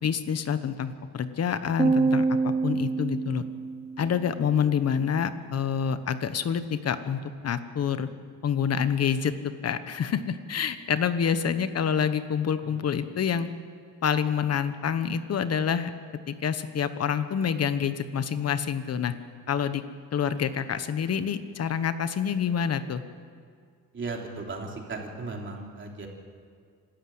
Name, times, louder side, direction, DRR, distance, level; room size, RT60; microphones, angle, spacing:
voice 1, 0.0-3.4 4.0-8.1 8.4-13.5 14.0-15.9 16.3-19.1 19.5-19.8 20.1-23.0, left 7 dB, 45° left, 12 dB, 1.1 m, -27 dB
sound 1, 1.8-4.2, right 4 dB, 20° right, 0.8 m, -26 dB
voice 2, 23.9-26.1, right 3 dB, 35° right, 1 dB, 3.2 m, -36 dB
26.0 x 13.0 x 7.8 m, 2.1 s
cardioid pair, 140°, 35 cm